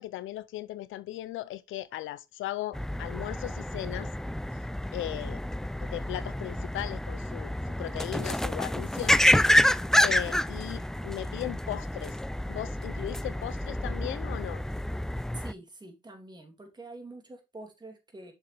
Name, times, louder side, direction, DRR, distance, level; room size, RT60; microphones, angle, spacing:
voice 1, 0.0-4.1 4.9-5.4 5.8-7.5 7.8-9.2 10.0-12.2 12.5-14.6, left 14 dB, 80° left, 0.5 m, -37 dB
sound 1, 2.7-15.5, left 1 dB, ahead, 0.4 m, -28 dB
voice 2, 15.3-18.3, right 2 dB, 20° right, 3.0 m, -46 dB
7.0 x 6.7 x 3.4 m
cardioid pair, 90°, 20 cm